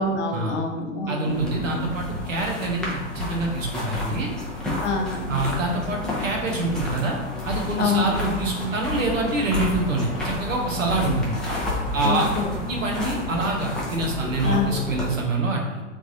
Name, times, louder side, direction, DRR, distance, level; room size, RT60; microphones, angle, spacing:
voice 1, 0.0-1.4 4.8-5.3 7.8-8.2 12.0-12.6 14.4-14.8, left 3 dB, 60° left, 2 dB, 0.8 m, -26 dB
voice 2, 1.1-4.3 5.3-7.2 7.4-11.4 11.9-12.3 12.7-15.8, right 2 dB, 75° right, 0 dB, 1.0 m, -26 dB
sound 1, 1.3-15.1, left 1 dB, ahead, 0.5 m, -30 dB
3.5 x 3.2 x 2.6 m, 1.2 s
figure-of-eight pair, 105°, 39 cm